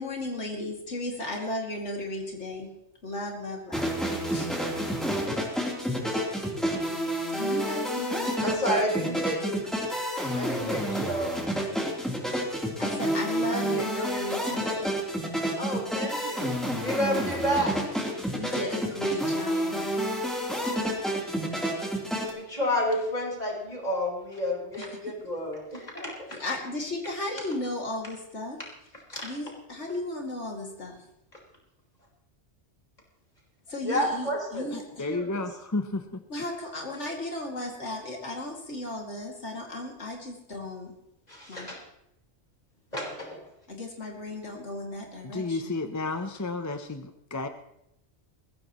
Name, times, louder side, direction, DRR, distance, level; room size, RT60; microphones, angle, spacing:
voice 1, 0.0-2.7 3.0-3.9 4.3-4.5 7.3-8.3 11.5-11.9 12.8-14.9 17.0-17.2 18.3-20.1 24.8-25.1 26.3-28.6 29.2-31.0 33.7-35.1 36.3-40.9 41.5-41.7 43.7-45.8, left 1 dB, 80° left, 0 dB, 2.8 m, -35 dB
sound 1, 3.7-22.3, equal, ahead, 3.4 m, -29 dB
voice 2, 8.4-9.6 10.4-11.4 15.6-17.8 22.3-26.1 29.1-29.3 33.8-34.6 35.1-35.3 41.3-41.8 42.9-43.4, equal, 35° left, -2 dB, 4.7 m, -30 dB
voice 3, 13.4-13.9 34.7-36.2 45.2-47.5, left 3 dB, 20° left, 7 dB, 0.6 m, -32 dB
21.5 x 15.5 x 3.1 m, 0.82 s
omnidirectional pair, 1.2 m